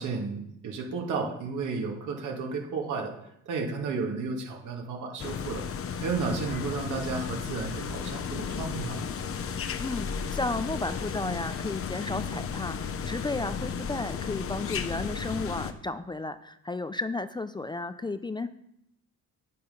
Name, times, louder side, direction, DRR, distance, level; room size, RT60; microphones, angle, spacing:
voice 1, 0.0-3.1 3.5-5.6 6.0-9.0, right 4 dB, 75° right, 1 dB, 2.1 m, -33 dB
sound 1, 5.2-15.7, left 6 dB, 50° left, 0.8 m, -34 dB
voice 2, 9.8-18.5, left 2 dB, 15° left, 11 dB, 0.4 m, -33 dB
8.6 x 6.6 x 5.4 m, 0.77 s
cardioid pair, 90°, 30 cm